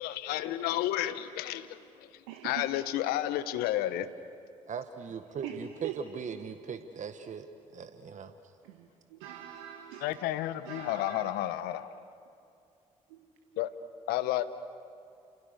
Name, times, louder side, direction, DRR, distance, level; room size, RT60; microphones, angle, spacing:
voice 1, 0.0-4.1 10.0-11.9 13.6-13.7 14.1-14.4, left 13 dB, 75° left, 1.1 m, -31 dB
voice 2, 2.3-2.7 5.4-5.9 8.6-11.4 13.1-13.2 13.5-13.7, right 10 dB, 80° right, 1.5 m, -44 dB
voice 3, 4.7-7.5 7.7-8.3, right 6 dB, 50° right, 1.5 m, -39 dB
29.0 x 27.5 x 6.8 m
hypercardioid pair, 50°, 16 cm